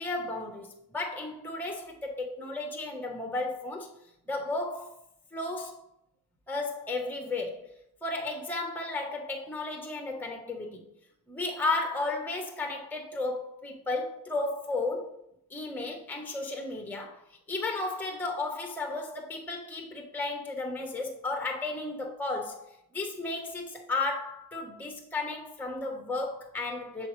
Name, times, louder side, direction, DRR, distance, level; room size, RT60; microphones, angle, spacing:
voice 1, 0.0-3.9 4.3-5.0 5.3-5.8 6.5-7.7 8.0-10.8 11.3-15.1 15.5-27.1, left 2 dB, 5° left, 0.9 m, -34 dB
7.7 x 4.1 x 3.1 m
cardioid pair, 80°, 38 cm